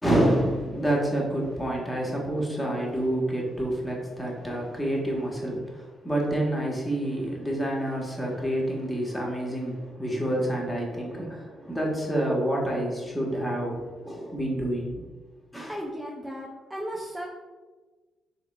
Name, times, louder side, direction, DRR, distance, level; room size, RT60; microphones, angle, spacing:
voice 1, 0.0-15.0 15.5-15.7, right 1 dB, 15° left, -2 dB, 1.3 m, -28 dB
voice 2, 15.7-17.3, equal, 10° right, -2 dB, 0.6 m, -35 dB
3.3 x 3.0 x 3.4 m, 1.3 s
supercardioid pair, 55°, 0 cm